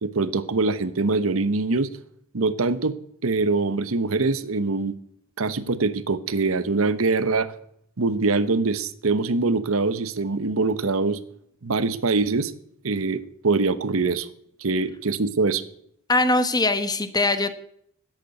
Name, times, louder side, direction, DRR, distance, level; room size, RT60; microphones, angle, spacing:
voice 1, 0.0-1.9 2.3-3.0 3.2-4.9 5.4-7.5 8.0-11.2 11.6-12.5 12.8-14.3 14.6-15.6, right 3 dB, 70° right, 14 dB, 0.9 m, -23 dB
voice 2, 16.1-17.5, left 2 dB, 20° left, 11 dB, 1.0 m, -21 dB
10.5 x 8.3 x 9.2 m, 0.70 s
head